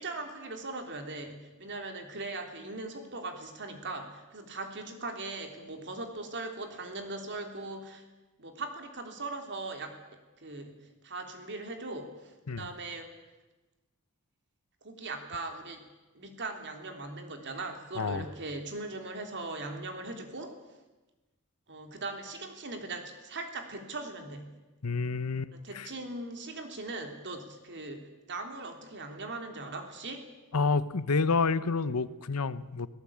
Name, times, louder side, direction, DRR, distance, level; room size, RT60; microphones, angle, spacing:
voice 1, 0.0-8.0 8.4-13.1 14.8-15.8 16.1-20.5 21.7-24.5 25.5-30.3, right 2 dB, 55° right, 5 dB, 3.4 m, -40 dB
voice 2, 24.8-25.9 30.5-32.9, left 4 dB, 90° left, 15 dB, 1.0 m, -29 dB
24.5 x 18.0 x 8.8 m, 1.1 s
head